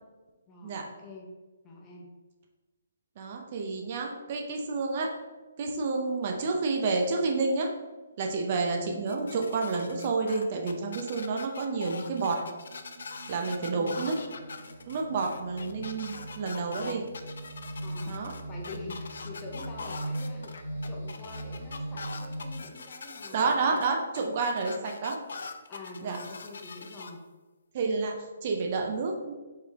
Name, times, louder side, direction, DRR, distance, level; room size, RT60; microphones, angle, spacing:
voice 1, 0.5-1.3 1.6-2.1 13.6-14.1 17.8-18.2 18.5-23.8 24.2-24.3 24.6-24.9 25.7-27.2, left 2 dB, 20° left, -2 dB, 0.9 m, -45 dB
voice 2, 3.2-5.1 5.6-7.7 8.2-12.4 13.3-14.2 14.9-17.0 18.1-18.3 23.3-25.2 26.0-26.2 27.7-29.3, right 4 dB, 45° right, 2 dB, 0.6 m, -29 dB
sound 1, 8.0-8.2 8.8-22.5, right 1 dB, 75° right, 1.2 m, -41 dB
sound 2, 9.1-27.1, left 4 dB, 65° left, 0.4 m, -43 dB
4.6 x 3.4 x 3.0 m, 1.2 s
figure-of-eight pair, 140°, 0 cm